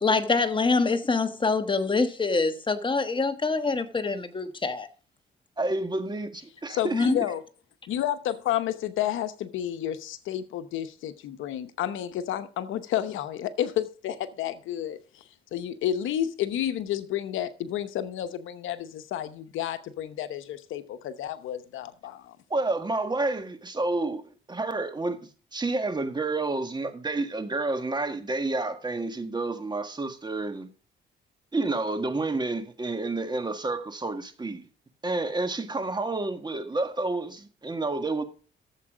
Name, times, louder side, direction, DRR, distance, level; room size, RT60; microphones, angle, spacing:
voice 1, 0.0-4.9 6.9-7.2, left 4 dB, 25° left, 1.2 m, -25 dB
voice 2, 5.6-7.3 22.5-25.2 25.5-30.7 31.5-34.6 35.0-38.2, right 2 dB, 20° right, 1.7 m, -29 dB
voice 3, 6.7-7.4 7.9-15.0 15.5-22.4, left 11 dB, 85° left, 0.9 m, -31 dB
12.5 x 7.5 x 4.9 m
cardioid pair, 90°, 20 cm